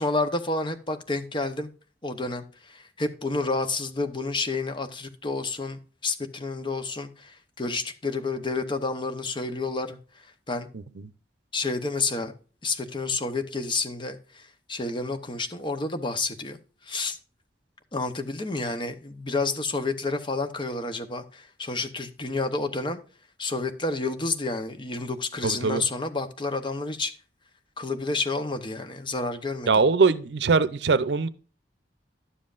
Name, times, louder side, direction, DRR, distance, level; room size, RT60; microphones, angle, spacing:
voice 1, 0.0-1.7 2.0-10.0 10.5-10.7 11.5-12.3 12.6-16.6 16.8-17.2 17.9-23.0 23.4-27.1 27.8-29.8, left 3 dB, 30° left, 0.8 m, -30 dB
voice 2, 25.4-25.8 29.7-31.3, right 4 dB, 75° right, 0.6 m, -21 dB
11.5 x 7.5 x 2.5 m
head